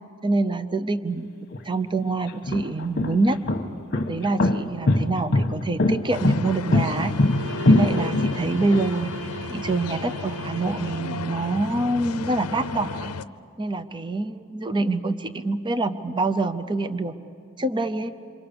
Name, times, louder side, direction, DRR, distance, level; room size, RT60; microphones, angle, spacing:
voice 1, 0.2-1.3 1.6-3.4 4.1-7.1 7.6-9.1 9.5-13.1 13.6-17.1 17.6-18.1, right 2 dB, 20° right, 11 dB, 0.6 m, -25 dB
sound 1, 1.5-1.6 2.3-8.8, left 2 dB, 45° left, 1.3 m, -21 dB
sound 2, 6.1-13.2, left 4 dB, 80° left, 0.6 m, -34 dB
Bowed string instrument, 6.8-11.7, right 4 dB, 55° right, 4.6 m, -40 dB
27.5 x 25.0 x 6.9 m, 2.6 s
head